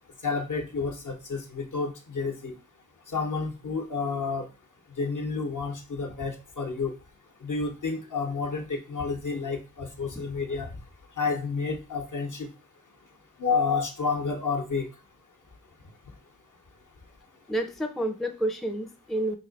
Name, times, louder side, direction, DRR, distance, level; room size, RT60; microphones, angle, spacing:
voice 1, 0.2-2.5 3.1-4.5 5.0-6.9 7.4-10.7 11.2-12.5 13.4-14.9, left 4 dB, 60° left, 3 dB, 0.9 m, -30 dB
voice 2, 17.5-19.4, right 1 dB, ahead, 6 dB, 0.5 m, -29 dB
3.1 x 2.8 x 4.0 m, 0.31 s
wide cardioid pair, 50°, 35 cm